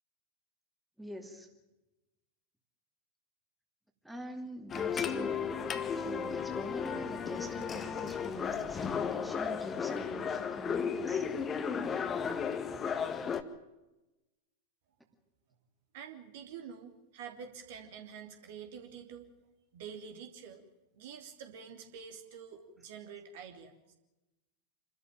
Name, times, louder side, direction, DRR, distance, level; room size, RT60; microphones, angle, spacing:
voice 1, 1.0-1.5 4.0-5.5 5.9-11.3, equal, 5° right, 4 dB, 2.6 m, -44 dB
sound 1, 4.7-13.4, left 6 dB, 25° left, 1.7 m, -34 dB
voice 2, 15.9-19.3 19.7-20.6 20.9-23.9, right 7 dB, 55° right, 5 dB, 3.3 m, -47 dB
27.5 x 13.5 x 9.1 m, 1.0 s
figure-of-eight pair, 90°, 0 cm